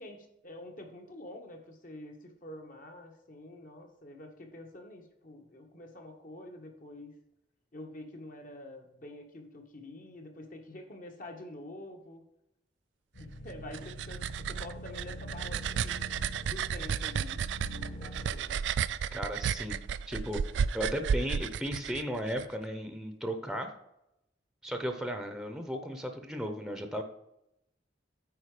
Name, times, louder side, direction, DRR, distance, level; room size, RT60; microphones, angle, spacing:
voice 1, 0.0-7.1 7.7-12.2 13.2-16.1 16.4-17.4 17.9-18.6, left 1 dB, 50° left, 3 dB, 1.5 m, -47 dB
sound 1, 13.1-18.3, equal, 80° left, 2.2 m, -44 dB
sound 2, 13.5-22.5, right 7 dB, 80° right, 0.3 m, -33 dB
voice 2, 19.1-19.8 20.1-20.4 20.7-23.7 24.6-27.0, equal, 5° right, 6 dB, 0.8 m, -35 dB
8.8 x 4.6 x 5.0 m, 0.83 s
head